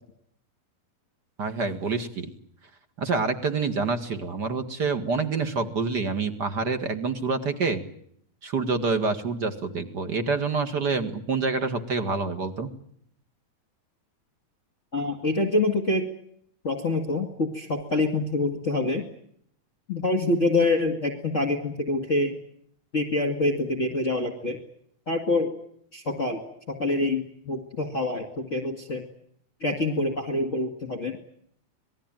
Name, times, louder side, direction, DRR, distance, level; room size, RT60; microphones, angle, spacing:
voice 1, 1.4-2.3 3.0-7.8 8.4-12.7, right 4 dB, 40° right, 9 dB, 1.7 m, -27 dB
voice 2, 14.9-16.1 16.6-19.0 19.9-22.4 22.9-24.6 25.1-25.5 25.9-26.4 26.7-29.0 29.6-31.2, left 2 dB, 25° left, 6 dB, 1.9 m, -26 dB
27.0 x 20.5 x 9.0 m, 0.66 s
omnidirectional pair, 4.3 m